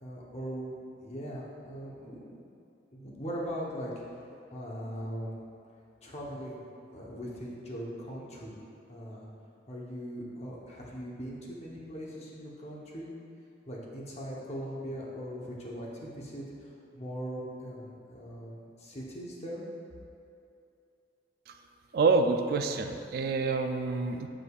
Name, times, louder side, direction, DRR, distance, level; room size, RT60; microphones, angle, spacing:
voice 1, 0.0-2.4 2.9-4.0 4.5-5.4 6.0-6.6 6.9-8.6 8.9-9.3 9.7-13.1 13.7-19.6, equal, 40° left, -4 dB, 0.9 m, -40 dB
voice 2, 21.9-24.3, right 4 dB, 60° right, 6 dB, 0.3 m, -27 dB
8.1 x 5.0 x 2.4 m, 2.6 s
head